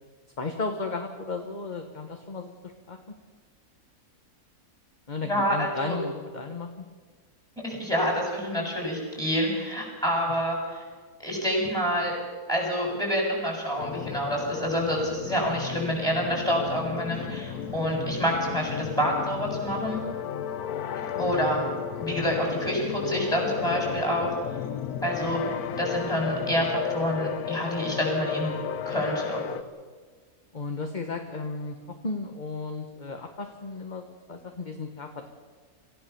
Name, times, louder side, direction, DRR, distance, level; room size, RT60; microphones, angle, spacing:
voice 1, 0.4-3.0 5.1-6.7 21.1-21.4 30.5-31.7 32.0-35.3, left 3 dB, 30° left, 4 dB, 1.6 m, -34 dB
voice 2, 5.3-6.0 7.6-10.8 11.2-12.2 12.5-20.0 20.9-21.7 22.0-24.3 25.0-25.4 25.8-28.6 28.9-29.4, equal, ahead, -1 dB, 7.7 m, -27 dB
sound 1, 13.8-29.6, left 8 dB, 80° left, 1.4 m, -34 dB
26.5 x 16.0 x 7.2 m, 1.5 s
omnidirectional pair, 1.6 m